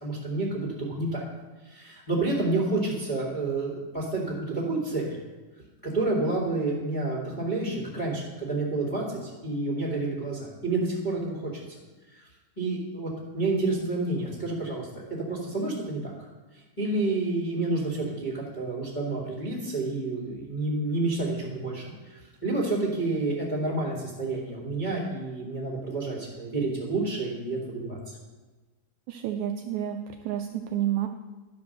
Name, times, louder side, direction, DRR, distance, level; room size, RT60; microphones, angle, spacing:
voice 1, 0.0-1.2 1.6-5.2 5.8-11.6 12.1-12.3 12.6-16.1 16.5-28.2, right 2 dB, 20° left, -6 dB, 1.6 m, -29 dB
voice 2, 29.1-30.0 30.3-31.1, right 11 dB, 80° right, 5 dB, 1.7 m, -29 dB
12.0 x 5.2 x 6.8 m, 1.2 s
omnidirectional pair, 3.7 m